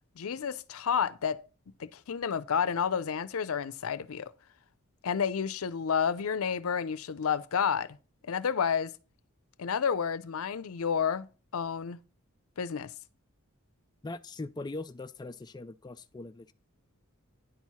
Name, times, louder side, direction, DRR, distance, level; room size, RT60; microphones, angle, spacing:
voice 1, 0.2-1.4 1.8-4.3 5.0-7.9 8.3-8.9 9.6-11.3 11.5-12.0 12.6-12.9, left 7 dB, 70° left, 0.5 m, -30 dB
voice 2, 14.0-16.5, left 2 dB, 20° left, 0.3 m, -41 dB
10.0 x 4.6 x 5.6 m
head